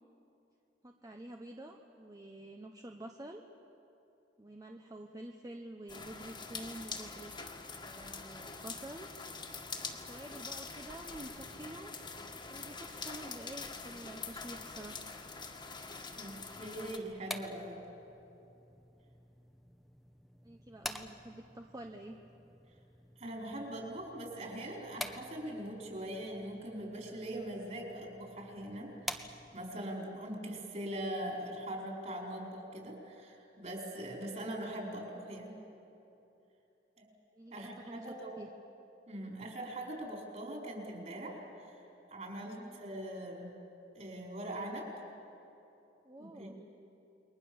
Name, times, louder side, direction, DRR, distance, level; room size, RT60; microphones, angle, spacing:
voice 1, 0.8-3.4 4.4-7.3 7.8-9.1 10.1-11.9 12.5-15.0 20.4-22.2 37.3-38.1 38.4-38.5 42.5-42.8 46.0-46.7, right 1 dB, 20° right, 3 dB, 1.0 m, -48 dB
sound 1, 5.9-17.0, left 4 dB, 25° left, 1.9 m, -45 dB
voice 2, 16.2-17.8 23.2-28.9 29.5-35.6 37.0-37.1 37.5-38.3 39.1-41.8 42.1-43.5 43.9-44.9 46.2-46.5, right 1 dB, 40° right, 0 dB, 5.1 m, -41 dB
sound 2, 16.9-29.8, equal, ahead, 1.0 m, -48 dB
29.0 x 22.0 x 7.2 m, 2.9 s
head